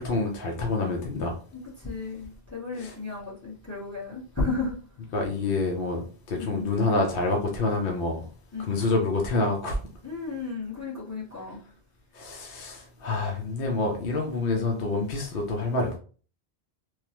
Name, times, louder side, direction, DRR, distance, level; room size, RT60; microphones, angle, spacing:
voice 1, 0.0-1.4 2.8-3.0 5.1-8.3 8.7-9.8 12.1-16.0, left 3 dB, 65° left, 0.8 m, -27 dB
voice 2, 1.8-4.8 6.4-6.7 8.5-8.9 10.0-11.6, left 3 dB, 15° left, 0.9 m, -33 dB
3.2 x 2.1 x 2.8 m
omnidirectional pair, 1.1 m